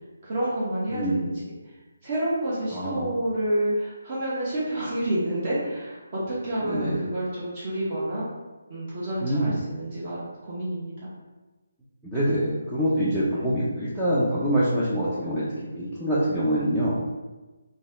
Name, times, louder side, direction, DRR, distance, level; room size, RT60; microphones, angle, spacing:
voice 1, 0.2-1.3 2.0-8.3 8.7-10.9, right 1 dB, 30° right, -8 dB, 0.9 m, -29 dB
voice 2, 0.9-1.2 2.7-3.1 6.6-7.1 9.2-9.6 12.0-15.4 15.7-17.0, equal, 5° right, -11 dB, 0.4 m, -25 dB
4.0 x 2.2 x 3.6 m, 1.2 s
hypercardioid pair, 170°, 0 cm